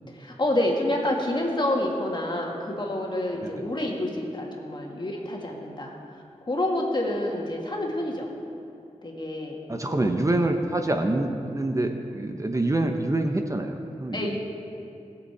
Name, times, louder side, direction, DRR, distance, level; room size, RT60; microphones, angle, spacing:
voice 1, 0.1-5.9 6.4-8.3 9.0-9.6 9.8-10.1 14.1-14.4, left 1 dB, 40° left, -1 dB, 2.1 m, -28 dB
voice 2, 9.7-14.3, right 2 dB, 25° right, 4 dB, 0.8 m, -26 dB
19.5 x 7.1 x 4.7 m, 2.7 s
wide cardioid pair, 60°, 12 cm